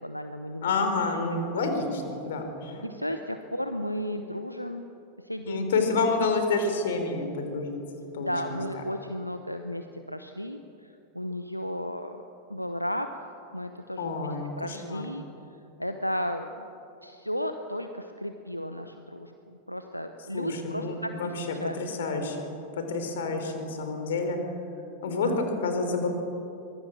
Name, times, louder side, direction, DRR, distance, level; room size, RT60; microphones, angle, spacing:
voice 1, 0.0-0.8 1.6-1.7 2.8-4.9 5.2-5.6 8.2-12.2 12.5-13.3 13.5-14.1 14.6-15.2 15.8-16.7 17.0-21.3 21.6-22.1 22.5-22.6 23.3-23.5 25.1-25.3, equal, 90° left, 7 dB, 0.9 m, -34 dB
voice 2, 0.6-2.9 5.5-7.8 8.1-8.8 14.0-15.0 20.3-22.5 22.8-24.4 25.0-26.1, left 3 dB, 60° left, 6 dB, 3.7 m, -29 dB
24.0 x 21.5 x 6.3 m, 2.9 s
figure-of-eight pair, 90°, 0 cm